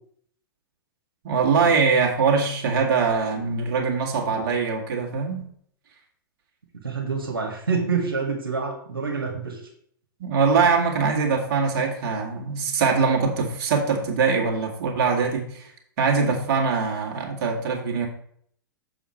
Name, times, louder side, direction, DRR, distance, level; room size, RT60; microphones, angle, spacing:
voice 1, 1.2-5.5 10.2-15.7 16.0-18.1, right 5 dB, 50° right, 0 dB, 2.0 m, -22 dB
voice 2, 6.8-9.6, right 5 dB, 80° right, -1 dB, 1.7 m, -27 dB
7.0 x 6.5 x 4.3 m, 0.65 s
figure-of-eight pair, 100°, 12 cm